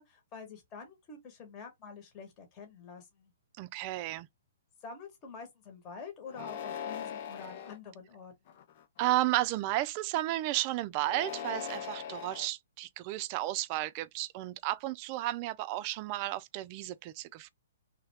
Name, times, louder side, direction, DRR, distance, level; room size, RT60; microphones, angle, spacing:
voice 1, 0.0-3.3 4.8-8.6, left 5 dB, 30° left, 1.3 m, -47 dB
voice 2, 3.6-4.3 9.0-17.5, right 16 dB, 35° right, 0.4 m, -33 dB
sound 1, 6.3-7.8 8.5-9.0 11.0-12.5, left 8 dB, 45° left, 0.7 m, -40 dB
3.2 x 2.3 x 3.4 m
hypercardioid pair, 135°, 0 cm